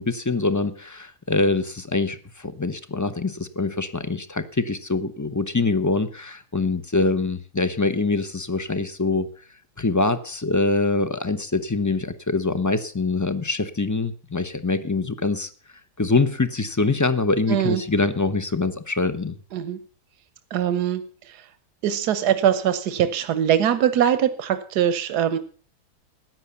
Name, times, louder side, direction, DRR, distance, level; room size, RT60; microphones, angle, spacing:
voice 1, 0.0-9.3 9.8-15.5 16.0-19.4, left 3 dB, 15° left, 12 dB, 0.6 m, -24 dB
voice 2, 17.5-17.8 19.5-19.8 20.5-21.0 21.8-25.4, right 9 dB, 85° right, 12 dB, 1.4 m, -22 dB
14.0 x 9.7 x 7.0 m, 0.41 s
omnidirectional pair, 1.7 m